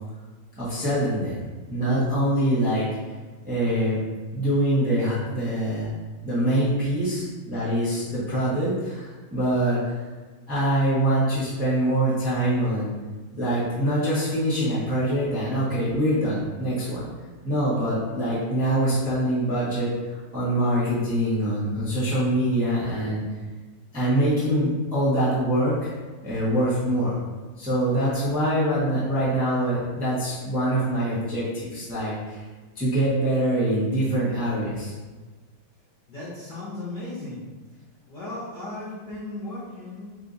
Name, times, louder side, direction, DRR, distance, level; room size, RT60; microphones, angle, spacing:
voice 1, 0.6-1.3 1.7-2.8 3.4-4.0 4.3-5.9 6.2-10.1 10.5-12.9 13.3-17.1 17.4-23.2 23.9-25.9 26.2-27.2 27.6-32.4 32.7-34.9, right 1 dB, 5° right, -11 dB, 0.8 m, -24 dB
voice 2, 36.1-37.4 38.1-40.2, left 2 dB, 60° left, -10 dB, 1.4 m, -36 dB
5.6 x 2.6 x 2.6 m, 1.3 s
omnidirectional pair, 2.3 m